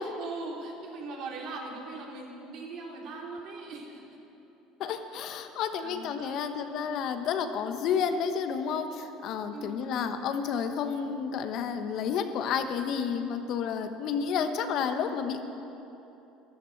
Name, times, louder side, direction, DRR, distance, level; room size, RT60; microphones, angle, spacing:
voice 1, 0.0-4.0 4.8-4.9 5.8-6.5 9.5-10.1, right 3 dB, 65° right, -2 dB, 3.6 m, -40 dB
voice 2, 4.8-15.4, left 7 dB, 60° left, 8 dB, 1.1 m, -31 dB
13.5 x 12.0 x 7.9 m, 3.0 s
supercardioid pair, 85°, 0 cm